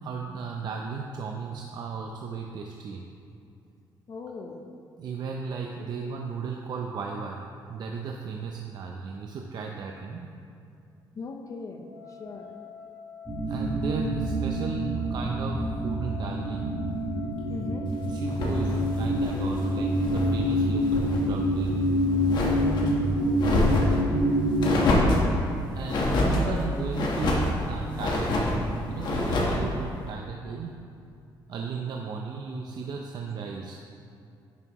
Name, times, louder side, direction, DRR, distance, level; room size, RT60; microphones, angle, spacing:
voice 1, 0.0-3.0 5.0-10.3 13.5-16.9 18.0-21.8 25.7-30.8 31.5-33.8, right 5 dB, 55° right, 1 dB, 0.6 m, -35 dB
voice 2, 4.1-4.6 5.8-5.9 11.1-11.8 12.2-12.5 17.5-17.9 23.2-23.8 26.4-26.8, left 4 dB, 40° left, 4 dB, 0.7 m, -38 dB
sound 1, 11.8-20.4, left 6 dB, 80° right, 1.1 m, -45 dB
sound 2, 13.3-24.8, equal, 10° right, 2.0 m, -27 dB
sound 3, 18.3-20.3 20.7-21.2 21.6-22.9 23.4-24.0 24.6-25.3 25.9-26.5 26.9-27.6 28.0-28.6 29.0-29.6, left 2 dB, 60° left, 1.3 m, -26 dB
10.5 x 7.2 x 3.1 m, 2.4 s
cardioid pair, 125°, 9 cm